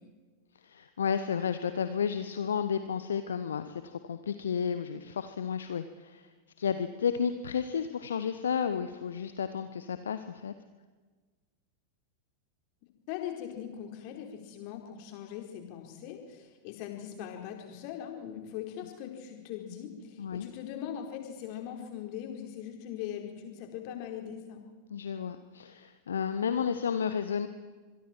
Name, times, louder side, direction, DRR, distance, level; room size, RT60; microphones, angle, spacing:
voice 1, 0.6-6.3 6.6-10.5 20.2-20.5 24.9-27.5, left 7 dB, 65° left, 11 dB, 1.0 m, -32 dB
voice 2, 13.1-24.6, left 9 dB, 45° left, 3 dB, 4.6 m, -40 dB
25.5 x 22.5 x 4.6 m, 1.4 s
figure-of-eight pair, 90°, 0 cm